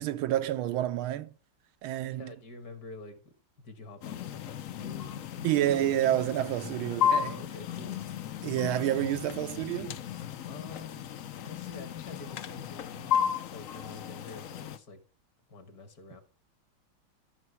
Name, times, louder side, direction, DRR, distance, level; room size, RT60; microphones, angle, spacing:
voice 1, 0.0-1.3 1.8-2.3 5.4-7.4 8.4-10.0, right 12 dB, 85° right, 1.5 m, -29 dB
voice 2, 2.0-5.4 7.2-8.0 10.5-11.0 11.4-13.1 13.5-15.0 15.5-16.2, left 2 dB, 50° left, 1.8 m, -47 dB
sound 1, 4.0-14.8, left 9 dB, 80° left, 0.7 m, -34 dB
12.5 x 5.9 x 4.6 m
omnidirectional pair, 2.2 m